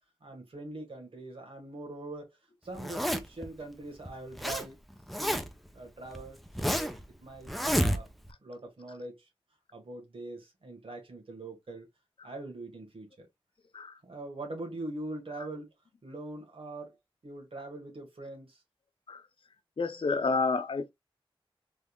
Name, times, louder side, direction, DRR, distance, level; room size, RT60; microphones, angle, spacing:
voice 1, 0.2-2.3 2.6-4.8 5.2-5.5 5.7-8.1 8.4-9.3 9.7-11.9 12.2-13.3 14.0-15.7 16.0-17.0 17.2-18.6, right 2 dB, 75° right, 1.5 m, -42 dB
Zipper (clothing), 2.8-3.5 4.1-4.7 4.9-5.7 6.1-7.0 7.5-8.3, equal, ahead, 0.6 m, -30 dB
voice 2, 19.8-20.9, left 4 dB, 65° left, 0.6 m, -29 dB
3.7 x 3.2 x 2.3 m
wide cardioid pair, 85°, 9 cm